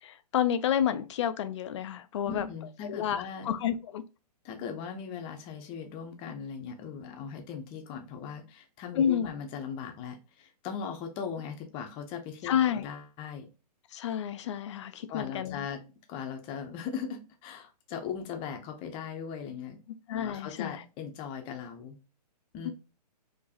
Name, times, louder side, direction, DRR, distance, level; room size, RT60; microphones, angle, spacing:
voice 1, 0.0-2.5 2.8-4.0 9.0-9.3 12.4-12.9 13.9-15.7 20.1-20.8 22.6-22.7, left 9 dB, 45° left, 0.6 m, -30 dB
voice 2, 2.2-3.5 4.4-13.5 15.1-15.8 16.1-19.8 20.2-22.0 22.5-22.7, left 7 dB, 25° left, 0.9 m, -39 dB
4.6 x 3.0 x 2.9 m
hypercardioid pair, 135°, 21 cm